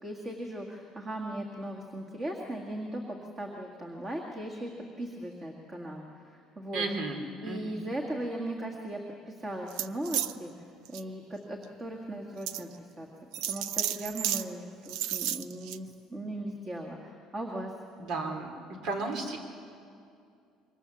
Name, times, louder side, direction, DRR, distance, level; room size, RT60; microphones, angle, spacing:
voice 1, 0.0-4.7 5.0-6.9 7.4-13.1 13.5-17.7, right 1 dB, 20° right, 0 dB, 2.0 m, -38 dB
voice 2, 6.7-7.8 18.0-19.4, right 3 dB, 60° right, 4 dB, 3.5 m, -34 dB
sound 1, 9.7-10.3 10.8-11.0 11.6-11.7 12.5-12.6 13.3-14.4 14.9-15.8, right 12 dB, 80° right, 0.6 m, -32 dB
26.0 x 24.0 x 7.2 m, 2.4 s
cardioid pair, 155°, 0 cm